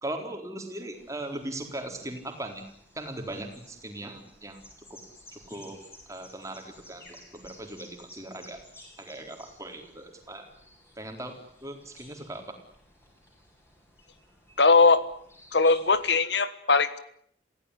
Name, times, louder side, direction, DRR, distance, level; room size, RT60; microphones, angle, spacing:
voice 1, 0.0-2.6 2.9-4.6 4.9-5.0 5.3-5.8 6.1-8.6 9.0-10.5 11.0-11.3 11.6-12.4, right 1 dB, 15° right, 4 dB, 4.1 m, -39 dB
sound 1, 0.9-16.1, left 1 dB, 15° left, 7.9 m, -54 dB
voice 2, 14.6-15.1 15.5-17.0, left 4 dB, 75° left, 14 dB, 1.5 m, -20 dB
27.0 x 16.5 x 10.0 m, 0.67 s
head